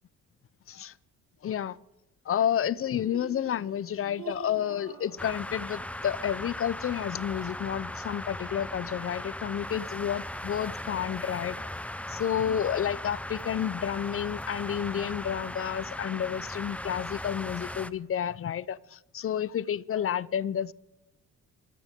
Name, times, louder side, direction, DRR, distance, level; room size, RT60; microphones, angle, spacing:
voice 1, 1.4-1.8 2.3-11.7 12.1-20.7, left 9 dB, 45° left, 0.7 m, -30 dB
Laughter, 2.7-6.4, right 6 dB, 65° right, 5.9 m, -47 dB
sound 1, 5.2-17.9, left 1 dB, 5° left, 0.7 m, -38 dB
26.5 x 13.5 x 3.7 m
cardioid pair, 90°, 30 cm